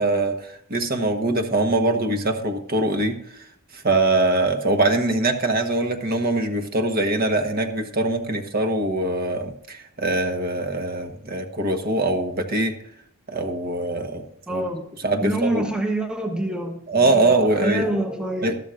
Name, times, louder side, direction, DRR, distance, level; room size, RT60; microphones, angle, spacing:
voice 1, 0.0-3.2 3.7-12.7 13.3-14.2 14.5-14.6 15.0-15.7 16.9-17.9 18.4-18.6, right 2 dB, 45° right, 5 dB, 1.4 m, -22 dB
voice 2, 14.5-14.9 15.2-18.6, right 1 dB, 5° right, 3 dB, 1.0 m, -26 dB
13.0 x 12.0 x 2.6 m, 0.71 s
head